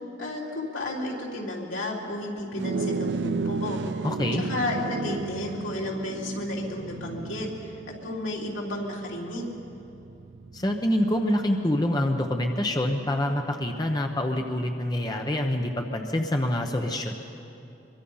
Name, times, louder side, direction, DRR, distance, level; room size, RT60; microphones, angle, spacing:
voice 1, 0.2-3.8 4.3-7.8 8.0-9.5, left 1 dB, 85° left, -2 dB, 3.7 m, -32 dB
sound 1, 2.5-12.1, right 4 dB, 65° right, 0.4 m, -34 dB
voice 2, 4.0-4.4 10.5-17.1, left 1 dB, 20° left, 3 dB, 1.0 m, -26 dB
24.5 x 23.0 x 5.7 m, 2.8 s
head